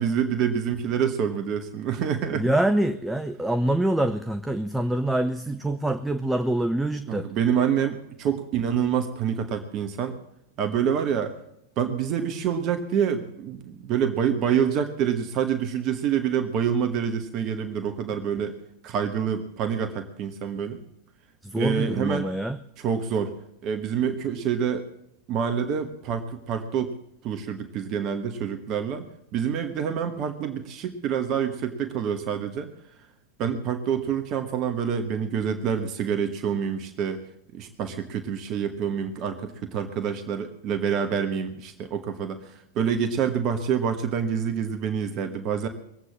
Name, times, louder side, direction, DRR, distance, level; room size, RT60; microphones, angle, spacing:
voice 1, 0.0-2.5 7.1-10.2 10.6-11.3 11.8-18.6 18.8-20.8 21.5-22.3 22.8-23.3 23.6-24.9 25.3-26.9 27.2-32.7 33.4-37.2 37.5-45.7, right 7 dB, 35° right, 7 dB, 1.2 m, -27 dB
voice 2, 2.3-7.3 21.4-22.6, right 1 dB, 5° right, 9 dB, 0.6 m, -25 dB
20.5 x 8.2 x 7.3 m, 0.78 s
figure-of-eight pair, 90°, 0 cm